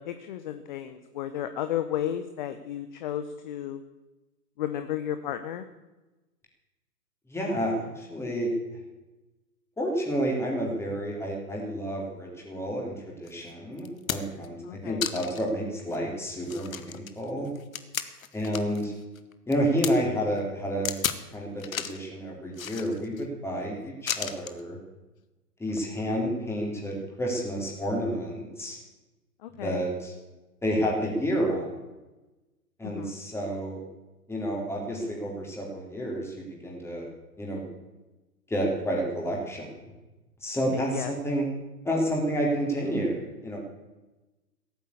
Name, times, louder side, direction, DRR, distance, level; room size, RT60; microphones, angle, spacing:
voice 1, 0.0-3.8 4.6-5.7 14.7-15.0 29.4-29.8 32.8-33.2 40.7-41.1, left 11 dB, 30° left, 9 dB, 0.8 m, -33 dB
voice 2, 7.3-8.5 9.8-17.5 18.3-18.9 19.5-21.0 21.3-24.8 25.6-28.8 29.6-30.1 30.6-31.7 32.8-33.8 34.3-37.1 37.4-37.6 38.5-39.8 40.4-41.5 41.8-43.6, equal, 5° left, -1 dB, 3.5 m, -30 dB
sound 1, 13.3-13.4 13.8-14.5 15.0-15.5 15.9-16.0 16.4-18.8 19.1-19.9 20.8-21.2 21.6-22.0 22.5-23.2 24.1-24.6 25.7-25.8, left 8 dB, 55° left, 1.3 m, -33 dB
16.0 x 9.2 x 8.4 m, 1.1 s
figure-of-eight pair, 125°, 48 cm